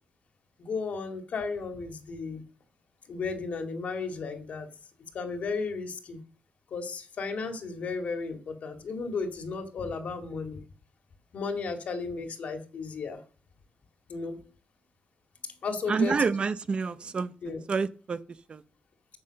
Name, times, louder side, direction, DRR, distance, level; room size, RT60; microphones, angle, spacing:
voice 1, 0.6-2.4 3.1-4.7 5.1-6.2 6.7-10.6 11.3-13.2 14.1-14.4 15.6-16.2 17.4-17.6, left 4 dB, 65° left, 2.2 m, -34 dB
voice 2, 15.9-17.3 17.7-18.2 18.5-18.6, right 5 dB, 40° right, 0.7 m, -28 dB
9.7 x 7.8 x 6.4 m
wide cardioid pair, 145°, 3 cm